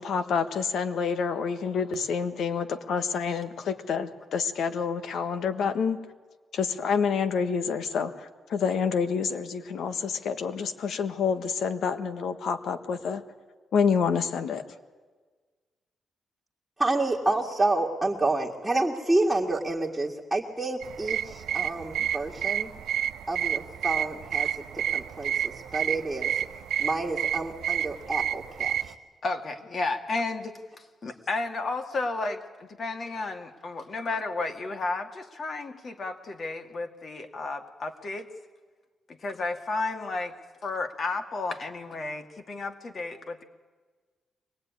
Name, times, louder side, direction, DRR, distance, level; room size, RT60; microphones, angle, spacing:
voice 1, 0.0-6.0 6.5-13.2 13.7-14.6, left 6 dB, 70° left, 9 dB, 1.5 m, -28 dB
voice 2, 16.8-22.7 23.3-24.5 24.7-26.3 26.8-28.9, right 2 dB, 5° right, -4 dB, 2.1 m, -29 dB
sound 1, 20.8-28.9, right 10 dB, 90° right, 0.8 m, -30 dB
voice 3, 29.2-38.3 39.1-40.3 40.6-43.4, left 3 dB, 40° left, 6 dB, 2.0 m, -33 dB
24.0 x 19.5 x 9.6 m, 1.4 s
cardioid pair, 145°, 0 cm